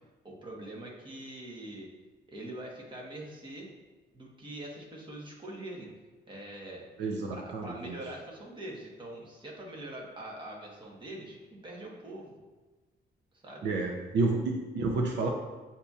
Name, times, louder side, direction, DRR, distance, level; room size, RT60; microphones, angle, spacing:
voice 1, 0.2-1.9 2.3-3.7 4.1-5.9 6.3-6.8 7.3-12.4 13.4-13.7, right 1 dB, 25° right, -2 dB, 1.1 m, -43 dB
voice 2, 7.0-7.9 13.6-15.3, right 3 dB, 80° right, 1 dB, 0.6 m, -30 dB
7.8 x 2.8 x 2.4 m, 1.3 s
cardioid pair, 125°, 18 cm